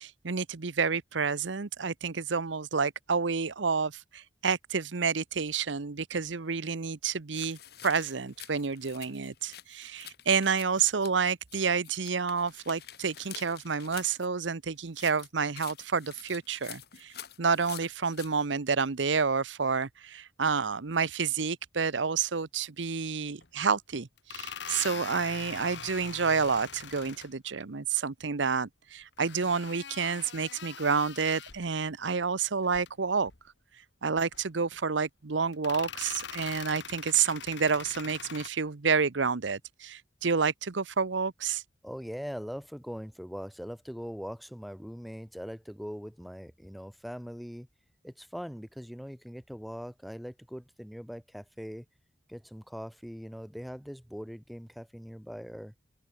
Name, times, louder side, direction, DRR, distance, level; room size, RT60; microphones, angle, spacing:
voice 1, 0.0-33.3 34.0-41.6, right 5 dB, 80° right, 0.9 m, -29 dB
sound 1, 7.3-11.6 11.8-14.3 14.9-18.3, left 11 dB, 55° left, 2.5 m, -48 dB
sound 2, 23.4-23.5 24.2-27.3 29.2-31.7 32.6-32.9 33.2-33.4 34.2-34.8 35.5-38.5, left 7 dB, 70° left, 1.5 m, -43 dB
voice 2, 41.8-47.7 48.0-51.8 52.3-55.7, equal, ahead, 1.8 m, -41 dB
head